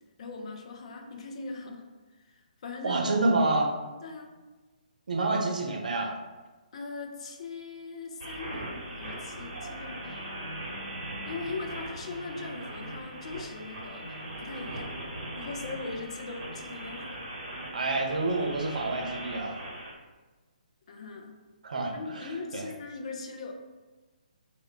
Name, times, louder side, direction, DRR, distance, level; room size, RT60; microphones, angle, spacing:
voice 1, 0.2-1.8 2.2-3.1 4.0-4.4 6.7-10.2 11.2-14.1 14.4-15.0 15.4-17.3 20.9-21.4 21.9-23.5, left 3 dB, 45° left, 2 dB, 0.4 m, -40 dB
voice 2, 2.8-3.7 5.1-6.1 9.5-9.8 17.7-19.6 21.6-22.6, right 2 dB, 60° right, 2 dB, 0.5 m, -28 dB
sound 1, 8.2-19.9, right 1 dB, 35° right, 0.9 m, -40 dB
sound 2, 10.0-16.6, equal, 80° left, 0.7 m, -47 dB
2.1 x 2.0 x 3.7 m, 1.3 s
figure-of-eight pair, 135°, 5 cm